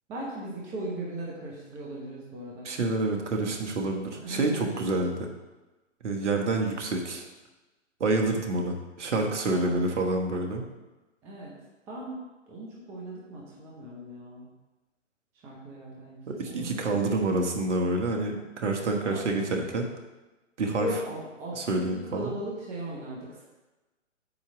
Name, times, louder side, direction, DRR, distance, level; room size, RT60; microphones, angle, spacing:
voice 1, 0.1-2.7 4.1-5.0 9.4-9.7 11.2-11.5 11.9-12.2 12.5-14.5 15.4-16.2 16.4-17.1 19.1-19.3 20.6-23.4, right 1 dB, 5° right, -4 dB, 0.5 m, -38 dB
voice 2, 2.6-5.1 6.0-7.3 8.0-10.6 16.3-19.9 20.6-20.9 21.5-22.2, right 2 dB, 65° right, 2 dB, 1.4 m, -28 dB
8.4 x 3.0 x 5.9 m, 1.1 s
figure-of-eight pair, 135°, 38 cm